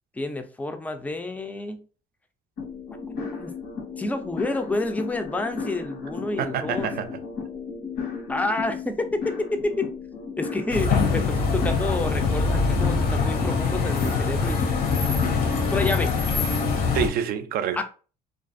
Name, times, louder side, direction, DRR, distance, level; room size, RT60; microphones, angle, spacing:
voice 1, 0.1-1.8 2.9-3.5 4.0-6.9 8.3-9.9 10.4-14.8 15.7-16.2 17.8-17.9, left 2 dB, 10° left, 0.3 m, -29 dB
sound 1, 2.6-16.4, left 5 dB, 90° left, 1.3 m, -35 dB
voice 2, 6.4-7.2 16.9-17.8, right 8 dB, 60° right, 0.4 m, -27 dB
sound 2, 10.7-17.1, left 4 dB, 65° left, 0.7 m, -23 dB
2.4 x 2.3 x 2.5 m
cardioid pair, 110°, 17 cm